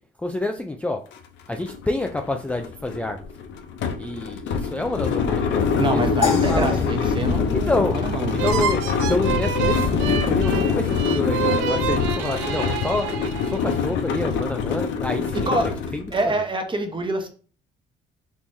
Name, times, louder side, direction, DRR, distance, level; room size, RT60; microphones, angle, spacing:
voice 1, 0.2-1.0 1.5-3.2 4.0-6.8 7.5-8.0 8.4-8.8 9.1-13.1 13.4-16.3, left 2 dB, 5° left, 0.3 m, -28 dB
sound 1, 1.1-1.2 1.5-16.3, left 6 dB, 65° left, 0.6 m, -24 dB
voice 2, 5.8-8.3 15.3-15.7 16.1-17.3, right 2 dB, 25° right, 0.8 m, -26 dB
sound 2, 6.2-8.6, left 6 dB, 50° left, 1.7 m, -30 dB
sound 3, 8.4-13.9, right 7 dB, 85° right, 0.4 m, -28 dB
3.6 x 2.9 x 2.6 m
supercardioid pair, 65°, 20 cm